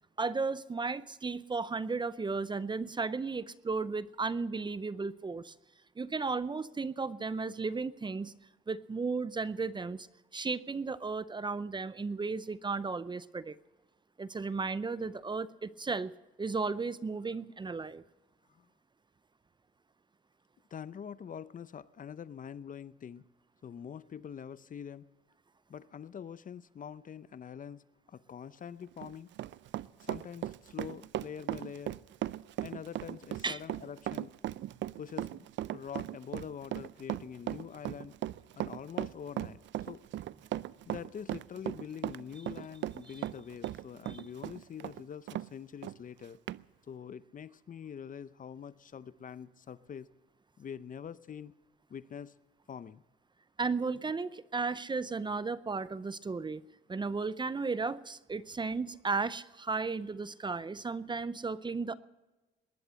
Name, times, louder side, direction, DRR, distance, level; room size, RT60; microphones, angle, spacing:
voice 1, 0.2-5.5 6.0-8.3 8.7-10.1 10.3-13.6 14.2-16.1 16.4-18.0 33.4-33.6 44.1-44.2 53.6-56.6 56.9-62.0, right 4 dB, 25° right, 17 dB, 0.6 m, -34 dB
voice 2, 20.7-23.2 23.6-25.1 25.7-27.8 28.1-29.3 30.0-32.0 32.6-34.3 35.0-35.5 35.7-38.2 38.5-40.0 40.9-46.4 46.9-50.1 50.6-51.5 51.9-52.3 52.7-53.0, left 8 dB, 45° left, 16 dB, 0.6 m, -45 dB
Run, 28.8-45.5 45.8-46.0 46.5-46.6, right 13 dB, 70° right, 0.5 m, -37 dB
19.0 x 11.0 x 6.3 m, 1.1 s
cardioid pair, 90°, 20 cm